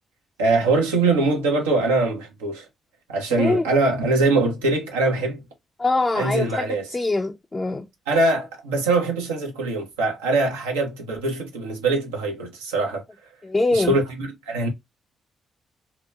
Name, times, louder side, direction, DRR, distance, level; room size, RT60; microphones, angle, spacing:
voice 1, 0.4-2.7 3.1-5.4 6.1-6.9 8.1-13.0 13.7-14.7, right 3 dB, 85° right, 0.7 m, -22 dB
voice 2, 3.3-3.6 5.8-7.9 13.4-13.9, left 2 dB, 25° left, 0.4 m, -23 dB
2.8 x 2.1 x 2.2 m
hypercardioid pair, 45°, 0 cm